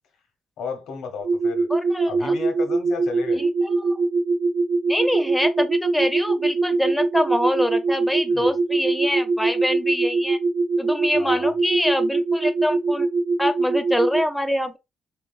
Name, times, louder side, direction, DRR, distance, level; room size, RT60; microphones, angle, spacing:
voice 1, 0.6-1.7 2.0-3.4 8.3-8.6 11.1-11.6, left 5 dB, 85° left, 0.7 m, -34 dB
sound 1, 1.2-14.2, right 3 dB, 70° right, 0.3 m, -22 dB
voice 2, 1.7-2.3 3.4-4.0 4.9-10.4 10.8-13.1 13.4-14.8, equal, 5° left, 0.4 m, -25 dB
3.3 x 2.3 x 2.2 m
cardioid pair, 90°, 0 cm